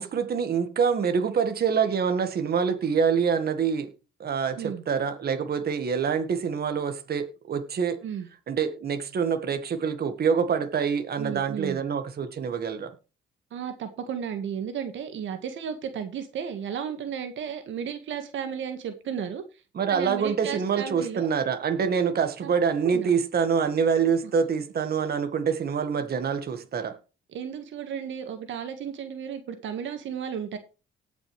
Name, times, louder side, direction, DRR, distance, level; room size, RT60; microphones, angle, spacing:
voice 1, 0.0-3.9 4.2-8.0 8.5-12.9 19.7-27.0, right 6 dB, 50° right, 1.7 m, -26 dB
voice 2, 11.2-11.8 13.5-19.4 19.9-21.3 22.4-22.5 22.8-23.1 24.2-24.3 27.3-30.6, right 8 dB, 75° right, 1.7 m, -34 dB
18.5 x 6.2 x 3.3 m
cardioid pair, 90°, 20 cm